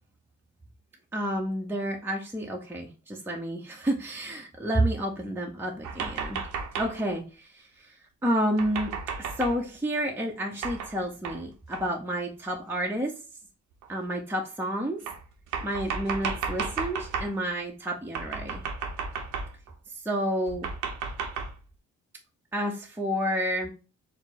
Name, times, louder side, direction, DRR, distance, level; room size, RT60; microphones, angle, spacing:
voice 1, 1.1-6.4 6.8-8.0 8.2-8.9 9.4-13.1 13.9-15.0 15.6-18.6 19.9-20.7 22.5-23.7, equal, 5° right, 0 dB, 0.7 m, -30 dB
sound 1, 5.8-7.0 8.6-9.6 10.6-11.0 11.2-11.4 11.7-11.9 12.7-12.8 13.8-13.9 15.1-17.4 18.1-19.7 20.5-21.5, right 5 dB, 85° right, 0.8 m, -33 dB
4.4 x 2.0 x 4.0 m, 0.34 s
cardioid pair, 90°, 30 cm